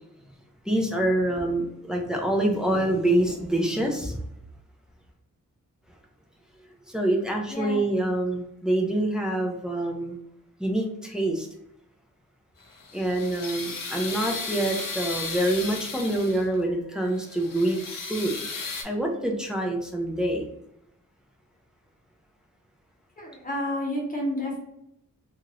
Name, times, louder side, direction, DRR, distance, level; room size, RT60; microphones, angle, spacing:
voice 1, 0.7-4.2 6.9-10.2 10.6-11.5 12.9-17.8 18.1-18.3 18.8-20.5, right 1 dB, ahead, 0 dB, 0.5 m, -26 dB
sound 1, 12.6-16.6 17.1-18.8, left 4 dB, 85° left, 0.7 m, -35 dB
voice 2, 23.2-24.6, left 1 dB, 25° left, -3 dB, 1.0 m, -30 dB
2.8 x 2.5 x 3.0 m, 0.80 s
wide cardioid pair, 120°, 33 cm